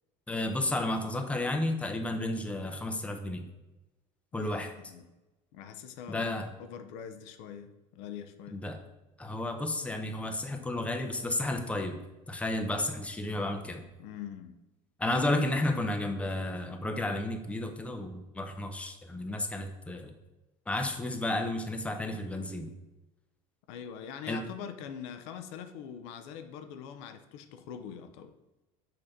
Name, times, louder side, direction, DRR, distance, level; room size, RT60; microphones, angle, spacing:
voice 1, 0.3-3.5 4.3-4.7 6.1-6.5 8.5-8.8 9.2-12.0 12.3-13.8 15.0-20.1 20.7-22.7 24.3-24.4, left 1 dB, 10° left, 5 dB, 0.7 m, -32 dB
voice 2, 4.3-5.1 5.5-8.6 14.0-14.6 23.7-28.3, left 8 dB, 85° left, 8 dB, 0.6 m, -43 dB
6.6 x 2.8 x 5.0 m, 1.1 s
supercardioid pair, 115°, 15 cm